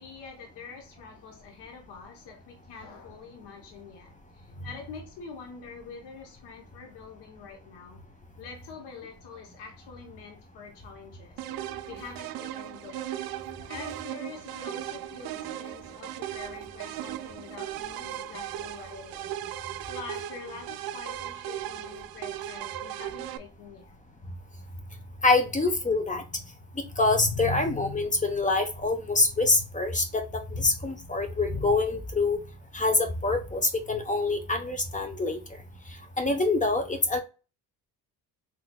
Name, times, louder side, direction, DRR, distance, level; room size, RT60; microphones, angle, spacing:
voice 1, 0.0-8.0 8.4-11.5 11.9-13.1 13.7-19.3 19.9-23.9, left 5 dB, 80° left, 1.1 m, -45 dB
sound 1, 11.4-23.4, right 12 dB, 60° right, 0.5 m, -37 dB
voice 2, 25.2-26.2 27.0-30.2 30.5-32.4 32.7-35.4 36.2-37.2, left 3 dB, 20° left, 0.9 m, -25 dB
3.8 x 3.0 x 2.3 m
cardioid pair, 85°, 40 cm